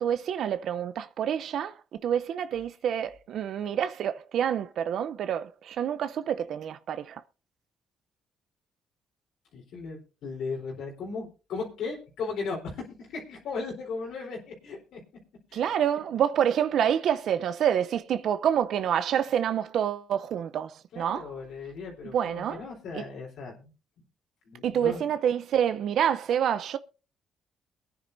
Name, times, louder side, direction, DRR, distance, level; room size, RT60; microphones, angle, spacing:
voice 1, 0.0-7.2 15.5-21.3 22.1-22.6 22.9-23.0 24.6-26.8, right 9 dB, 70° right, 0.6 m, -27 dB
voice 2, 9.5-15.0 15.5-15.6 20.9-23.7 24.4-25.0, left 4 dB, 80° left, 3.8 m, -37 dB
23.0 x 9.7 x 2.7 m
cardioid pair, 90°, 0 cm